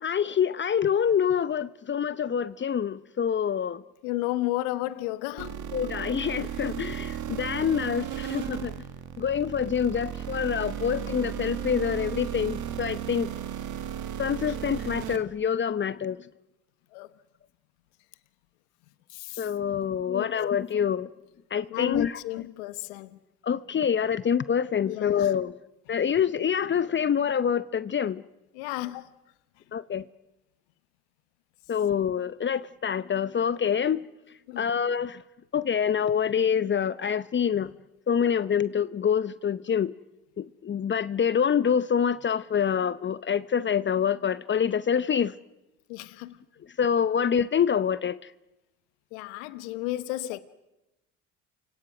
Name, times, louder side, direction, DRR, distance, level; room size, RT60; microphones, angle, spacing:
voice 1, 0.0-3.8 5.7-8.7 9.2-13.3 14.2-16.2 19.4-21.1 21.5-22.1 23.5-25.5 25.9-28.2 29.7-30.0 31.7-34.0 34.6-35.2 35.5-37.7 38.1-39.9 40.4-45.3 46.8-48.2, left 7 dB, 35° left, 0.8 m, -26 dB
voice 2, 4.0-5.6 14.5-14.6 16.9-17.1 19.1-19.5 20.1-20.3 21.7-23.2 24.9-25.3 28.5-29.1 34.5-34.7 45.9-46.4 49.1-50.4, left 17 dB, 80° left, 1.2 m, -33 dB
sound 1, 5.4-15.2, right 9 dB, 60° right, 2.2 m, -35 dB
29.0 x 24.5 x 6.1 m
hypercardioid pair, 65°, 34 cm